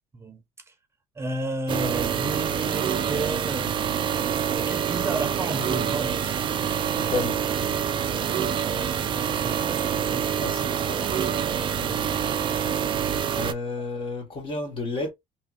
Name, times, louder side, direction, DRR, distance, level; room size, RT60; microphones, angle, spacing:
voice 1, 0.1-0.7 1.2-4.0 4.5-6.4 8.0-8.1 8.9-10.6 11.8-12.2, right 2 dB, 20° right, 0.8 m, -33 dB
sound 1, 1.7-13.5, right 8 dB, 35° right, 0.4 m, -26 dB
voice 2, 7.0-7.4 10.4-11.1 13.3-15.1, left 3 dB, 40° left, 1.2 m, -31 dB
2.8 x 2.8 x 2.4 m
cardioid pair, 125°, 14 cm